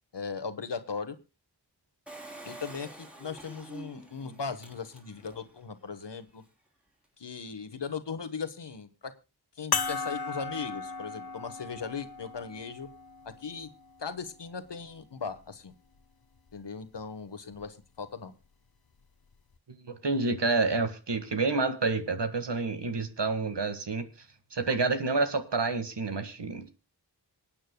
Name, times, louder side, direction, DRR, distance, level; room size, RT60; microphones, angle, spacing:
voice 1, 0.1-1.2 2.4-6.4 7.2-9.1 9.6-12.9 13.2-13.7 14.0-15.7 16.5-18.3, left 5 dB, 85° left, 11 dB, 1.3 m, -38 dB
Engine, 2.1-5.5 6.0-6.1 6.3-6.4, right 1 dB, 5° right, 3.2 m, -47 dB
sound 1, 9.7-14.5 15.3-15.4 17.5-17.7, left 5 dB, 60° left, 0.9 m, -36 dB
voice 2, 19.7-24.1 24.5-26.7, right 3 dB, 80° right, 8 dB, 1.7 m, -29 dB
26.5 x 8.8 x 2.2 m, 0.30 s
wide cardioid pair, 45°, 41 cm